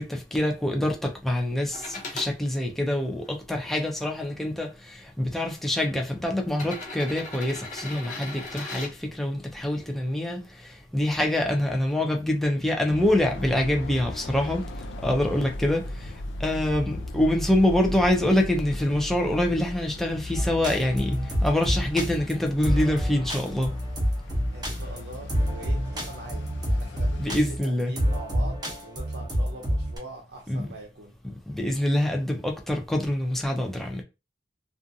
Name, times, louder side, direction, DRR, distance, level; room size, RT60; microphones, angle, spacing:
voice 1, 0.0-14.6 15.0-16.1 16.4-21.2 21.4-23.7 27.2-27.9 30.5-30.7 31.5-34.0, left 1 dB, ahead, 0.4 m, -25 dB
sound 1, 1.7-2.3 3.0-4.1 5.1-5.2 6.5-8.9 10.8-10.9, left 3 dB, 45° left, 0.8 m, -38 dB
sound 2, 12.9-27.3, left 1 dB, 75° left, 0.4 m, -37 dB
sound 3, 20.3-30.0, equal, 25° right, 0.8 m, -28 dB
voice 2, 24.5-31.1, right 2 dB, 70° right, 0.5 m, -43 dB
2.5 x 2.3 x 2.6 m
head